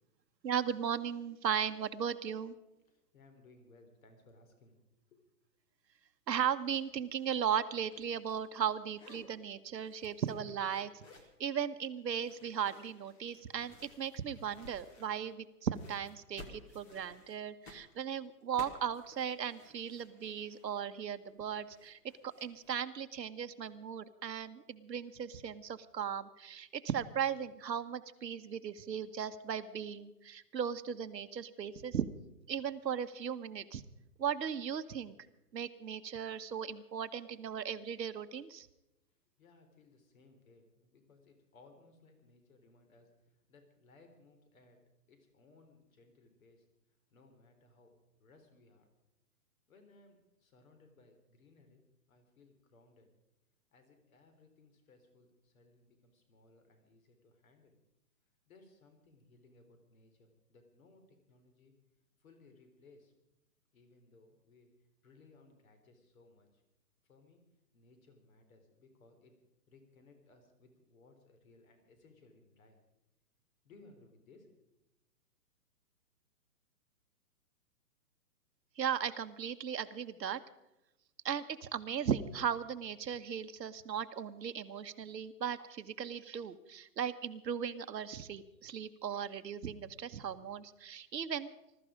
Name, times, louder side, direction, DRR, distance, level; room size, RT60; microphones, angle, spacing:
voice 1, 0.4-2.5 6.3-11.0 11.4-32.1 32.5-33.8 34.2-35.2 35.5-38.7 78.8-80.4 81.2-91.5, right 8 dB, 85° right, 10 dB, 1.3 m, -37 dB
voice 2, 2.9-4.8 5.1-5.2 39.4-44.8 45.1-48.9 49.7-51.8 52.1-53.1 53.7-57.8 58.5-61.7 62.2-63.1 63.7-64.7 65.0-66.6 67.0-67.4 67.7-69.3 69.7-72.8 73.6-74.8, left 3 dB, 55° left, 6 dB, 3.9 m, -63 dB
sound 1, 6.7-6.9 7.2-8.6 8.9-9.3 9.7-11.4 12.1-15.4 15.7-22.8, left 2 dB, 10° left, 0.9 m, -57 dB
20.5 x 13.0 x 5.1 m, 0.93 s
hypercardioid pair, 155°, 49 cm